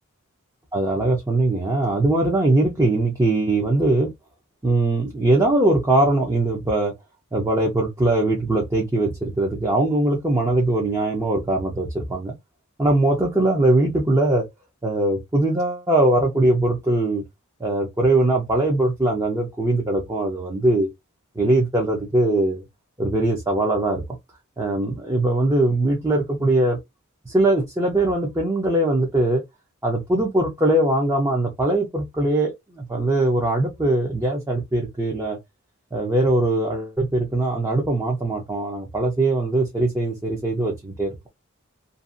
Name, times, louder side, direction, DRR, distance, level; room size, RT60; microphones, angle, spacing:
voice 1, 0.7-4.1 4.6-6.9 7.3-12.3 12.8-14.4 14.8-17.2 17.6-20.9 21.4-22.6 23.0-24.0 24.6-26.8 27.3-29.4 29.8-35.4 35.9-41.3, right 2 dB, 15° right, 0.6 m, -21 dB
2.6 x 2.5 x 2.5 m
head